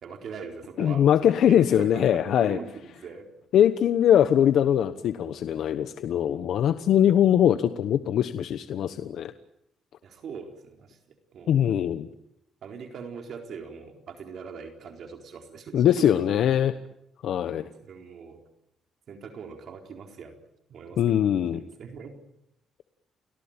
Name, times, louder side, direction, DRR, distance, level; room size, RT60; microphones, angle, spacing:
voice 1, 0.0-3.3 10.0-11.6 12.6-16.2 17.5-18.4 19.1-20.4 20.7-21.2 21.5-22.2, right 6 dB, 60° right, 4 dB, 4.1 m, -41 dB
voice 2, 0.8-2.6 3.5-9.3 11.5-12.1 15.7-16.7 17.2-17.6 21.0-21.6, left 10 dB, 70° left, 11 dB, 1.1 m, -22 dB
30.0 x 18.5 x 8.8 m, 0.81 s
cardioid pair, 100°, 0 cm